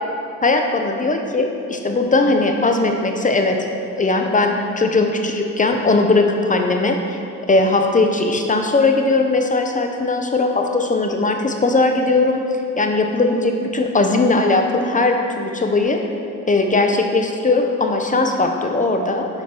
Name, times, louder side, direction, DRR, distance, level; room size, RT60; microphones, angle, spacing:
voice 1, 0.4-3.6 4.0-7.2 7.5-12.4 12.8-16.0 16.5-19.3, left 3 dB, 25° left, 4 dB, 0.8 m, -18 dB
7.9 x 5.1 x 5.2 m, 2.6 s
cardioid pair, 90°, 30 cm